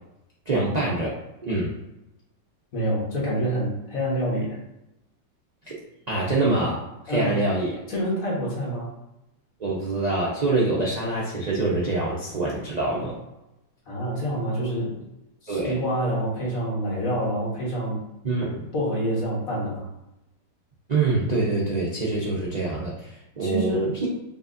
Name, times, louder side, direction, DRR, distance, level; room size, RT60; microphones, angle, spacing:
voice 1, 0.5-1.1 1.4-1.7 5.7-5.8 6.1-7.8 9.6-13.2 15.5-15.7 18.2-18.7 20.9-24.1, right 2 dB, 50° right, -5 dB, 0.4 m, -25 dB
voice 2, 2.7-4.6 7.1-7.4 7.9-8.9 13.9-15.1 15.4-18.0 18.7-19.9 23.4-24.0, equal, 50° left, -4 dB, 1.8 m, -27 dB
5.4 x 3.2 x 2.5 m, 0.90 s
omnidirectional pair, 2.0 m